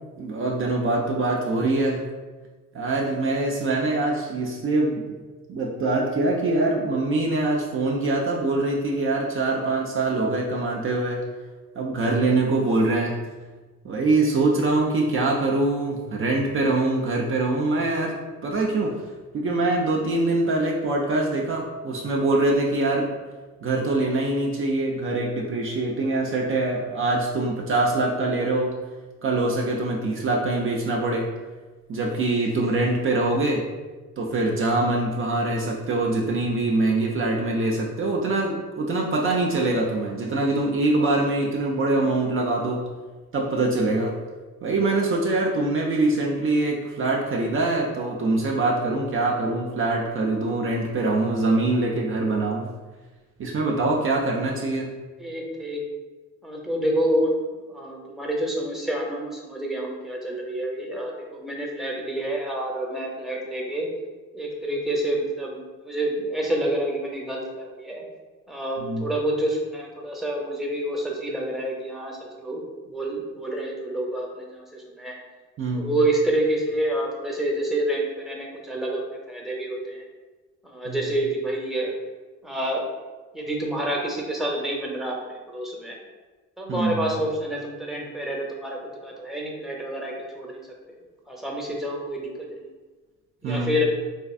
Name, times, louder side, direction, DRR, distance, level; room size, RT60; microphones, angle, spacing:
voice 1, 0.2-2.1 2.7-5.0 5.5-11.2 11.8-13.1 13.8-19.0 19.3-23.2 23.6-28.7 29.2-31.3 31.9-33.6 34.2-42.8 43.3-44.2 44.6-52.7 53.4-55.0 68.8-69.1 75.6-75.9 80.9-81.0 86.7-87.1 93.4-93.7, right 2 dB, 45° right, -2 dB, 0.5 m, -24 dB
voice 2, 55.2-55.8 56.4-57.3 57.7-63.9 64.3-68.0 68.5-72.6 72.9-75.2 75.8-80.0 80.6-81.9 82.4-82.9 83.3-86.0 86.6-90.6 91.3-92.7 93.4-93.8, right 1 dB, ahead, -2 dB, 0.7 m, -28 dB
4.3 x 2.5 x 2.4 m, 1.3 s
cardioid pair, 90°, 30 cm